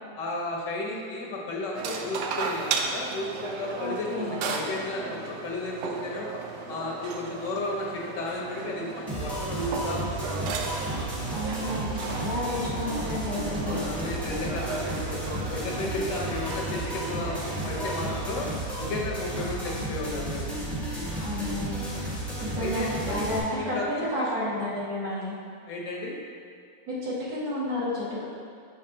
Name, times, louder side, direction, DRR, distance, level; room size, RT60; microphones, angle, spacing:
voice 1, 0.2-6.3 6.7-10.4 13.5-18.5 18.8-20.4 22.6-23.3 23.5-24.3 25.7-26.2, left 2 dB, 70° left, -2 dB, 1.5 m, -34 dB
sound 1, 1.7-18.3, right 4 dB, 75° right, 1.0 m, -35 dB
voice 2, 3.8-4.4 11.3-13.8 21.2-21.8 22.4-25.3 26.9-28.2, left 1 dB, 55° right, -9 dB, 2.0 m, -31 dB
sound 2, 9.1-23.4, right 1 dB, ahead, 0.8 m, -33 dB
6.4 x 6.2 x 2.6 m, 2.2 s
omnidirectional pair, 2.0 m